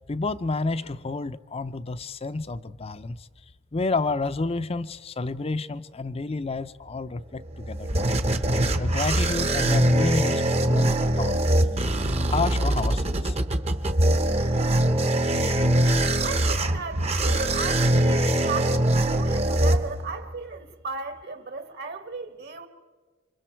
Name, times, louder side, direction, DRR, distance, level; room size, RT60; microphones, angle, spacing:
voice 1, 0.1-3.3 3.7-8.2 8.7-11.9 12.3-13.4, left 3 dB, 30° left, 0.5 m, -30 dB
sound 1, 7.3-20.3, right 1 dB, 30° right, 0.9 m, -23 dB
voice 2, 16.2-22.7, right 4 dB, 55° right, 1.5 m, -35 dB
28.5 x 25.5 x 4.5 m
head